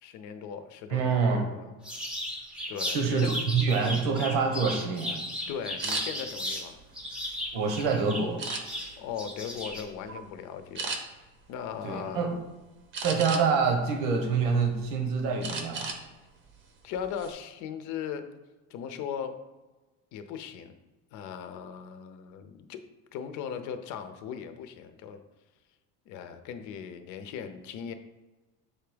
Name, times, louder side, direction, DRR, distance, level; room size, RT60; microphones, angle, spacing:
voice 1, 0.0-1.7 2.7-3.4 5.5-6.8 9.0-10.9 11.5-12.4 16.8-18.3 18.7-19.4 20.1-20.7 21.1-22.8 23.1-25.2 26.1-27.9, left 8 dB, 60° left, 9 dB, 0.7 m, -38 dB
voice 2, 0.9-1.5 2.9-5.2 7.5-8.4 11.8-12.3 13.0-15.9, right 5 dB, 80° right, 4 dB, 1.3 m, -26 dB
sound 1, 1.8-6.6 6.9-9.8, equal, 5° right, 0.7 m, -35 dB
sound 2, 5.8-6.0 6.7-7.7 8.4-9.0 9.5-9.7 10.1-10.3 10.8-11.0 12.9-13.6 14.2-14.9 15.4-16.0 16.4-16.6 17.0-17.3, right 4 dB, 35° right, 0.8 m, -35 dB
7.7 x 3.4 x 5.1 m, 1.2 s
cardioid pair, 175°, 33 cm